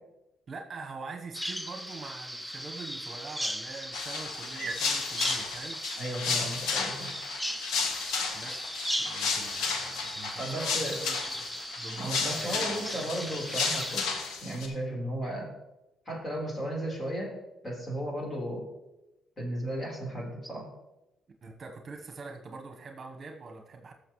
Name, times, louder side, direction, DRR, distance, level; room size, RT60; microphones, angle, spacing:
voice 1, 0.5-5.8 8.3-8.7 9.1-11.5 11.8-13.3 21.4-23.9, right 4 dB, 45° right, 3 dB, 1.1 m, -43 dB
Bird vocalization bird call bird song, 1.3-14.0, equal, 5° left, 0.5 m, -37 dB
sound 1, 3.9-14.7, left 5 dB, 85° left, 1.3 m, -33 dB
voice 2, 6.0-7.1 10.4-11.0 12.0-14.0 14.4-15.5 16.1-17.3 17.6-18.7 19.4-20.7, right 1 dB, 30° left, -2 dB, 4.0 m, -34 dB
14.5 x 6.6 x 3.2 m, 0.96 s
cardioid pair, 90°, 0 cm